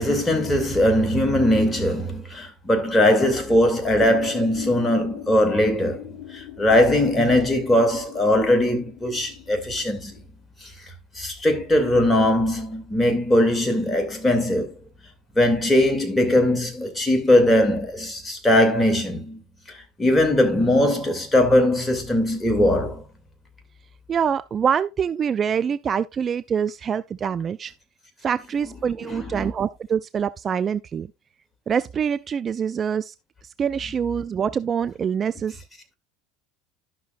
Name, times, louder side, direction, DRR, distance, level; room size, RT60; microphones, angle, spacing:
voice 1, 0.0-6.0 6.3-10.2 10.6-10.7 11.1-14.7 15.3-23.0 29.0-29.2, left 1 dB, 15° left, 2.5 m, -20 dB
sound 1, 4.0-10.2, left 15 dB, 60° left, 4.0 m, -40 dB
voice 2, 24.1-27.7 28.2-31.1 31.7-33.1 33.6-35.6, right 7 dB, 35° right, 0.3 m, -25 dB
12.0 x 6.0 x 2.4 m
hypercardioid pair, 75°, 0 cm